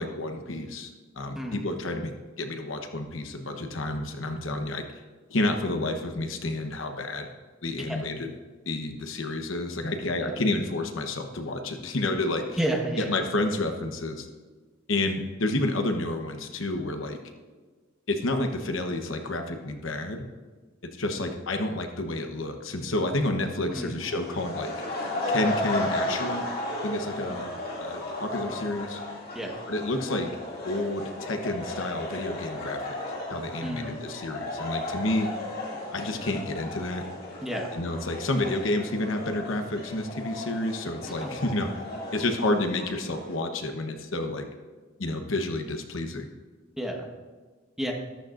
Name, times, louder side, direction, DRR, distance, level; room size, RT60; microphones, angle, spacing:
voice 1, 0.0-4.9 5.3-7.3 7.6-8.3 8.7-12.6 13.0-14.3 14.9-17.2 18.1-20.3 21.0-24.7 25.3-26.5 26.8-27.5 27.8-29.0 29.7-30.3 30.6-33.0 33.3-35.3 35.9-37.0 37.7-41.7 42.1-44.5 45.0-46.3, left 2 dB, 70° left, 5 dB, 1.1 m, -30 dB
voice 2, 12.6-13.3 23.7-24.0 27.3-27.4 29.3-29.6 33.6-34.0 37.4-37.7 41.2-41.4 46.8-47.1 47.8-47.9, right 1 dB, 5° right, 0 dB, 1.3 m, -31 dB
sound 1, 24.0-43.4, left 1 dB, 45° left, 2.5 m, -35 dB
13.5 x 13.0 x 2.6 m, 1.4 s
head